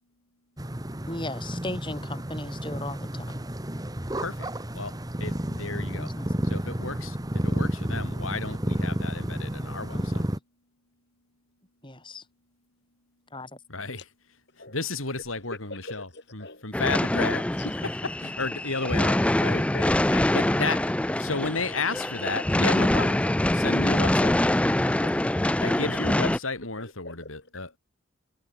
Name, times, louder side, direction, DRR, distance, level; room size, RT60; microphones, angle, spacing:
sound 1, 0.6-10.4, right 1 dB, 20° right, 1.5 m, -31 dB
voice 1, 1.1-3.5 6.0-6.3 9.9-10.4 11.8-12.2 13.3-13.5, left 1 dB, 25° left, 7.2 m, -37 dB
voice 2, 4.2-6.1 6.4-7.2 7.4-10.2 13.7-14.1 14.7-17.4 17.8-19.7 20.3-20.8 21.2-23.2 23.5-24.4 25.6-27.8, left 3 dB, 85° left, 5.4 m, -33 dB
voice 3, 15.7-16.7 17.3-17.7 19.7-20.4 25.0-26.0 26.8-27.3, left 4 dB, 55° left, 5.8 m, -41 dB
sound 2, 16.7-26.4, left 1 dB, 5° left, 0.3 m, -24 dB
head